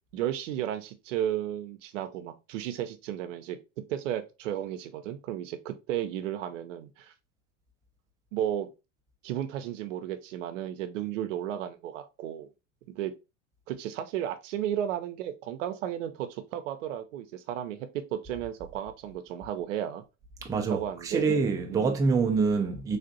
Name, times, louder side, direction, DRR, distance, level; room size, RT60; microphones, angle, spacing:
voice 1, 0.1-3.6 3.9-7.1 8.3-8.7 9.2-12.5 13.0-13.1 13.7-20.0 20.7-21.2 21.7-21.9, right 11 dB, 80° right, 0.7 m, -33 dB
voice 2, 20.4-23.0, right 4 dB, 10° right, 0.4 m, -26 dB
3.5 x 2.5 x 2.6 m
supercardioid pair, 120°, 37 cm